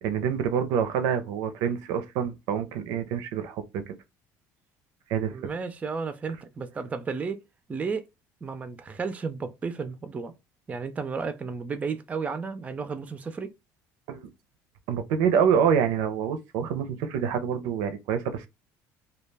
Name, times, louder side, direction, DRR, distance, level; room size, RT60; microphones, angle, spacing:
voice 1, 0.0-3.9 5.1-5.4 14.1-14.3 14.9-18.5, right 7 dB, 80° right, 0.4 m, -26 dB
voice 2, 5.3-7.4 7.7-8.0 8.4-10.3 10.7-13.5, right 5 dB, 20° right, 0.4 m, -33 dB
2.2 x 2.1 x 3.2 m
cardioid pair, 120°, 7 cm